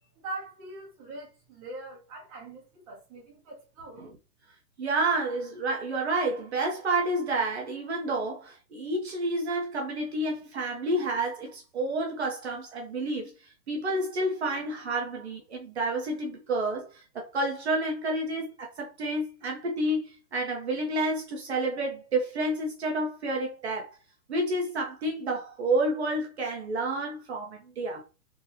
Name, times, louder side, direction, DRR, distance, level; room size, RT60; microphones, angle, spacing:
voice 1, 0.1-4.0, right 2 dB, 20° right, 1.4 m, -42 dB
voice 2, 4.8-13.3 13.7-23.9 24.3-28.0, right 2 dB, 40° right, 1.0 m, -30 dB
3.7 x 3.2 x 2.8 m
hypercardioid pair, 170°, 48 cm